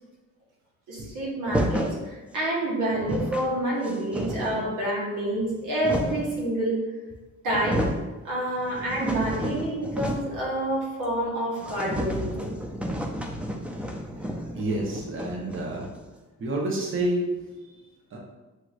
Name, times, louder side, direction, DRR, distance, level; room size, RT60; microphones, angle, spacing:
voice 1, 0.9-6.8 7.4-7.9 8.2-12.5, right 1 dB, 85° right, -4 dB, 1.4 m, -28 dB
sound 1, 1.5-2.0 2.7-2.8 2.9-3.5 3.8-4.7 5.4-6.3 7.1-7.2 7.5-8.1 8.5-10.4 10.7-10.8 11.1-11.2 11.6-16.1, equal, 5° right, 0.5 m, -31 dB
voice 2, 14.5-15.9 16.4-17.4 17.6-18.2, right 1 dB, 40° right, -2 dB, 1.0 m, -29 dB
6.4 x 2.8 x 2.5 m, 1.2 s
cardioid pair, 90°, 30 cm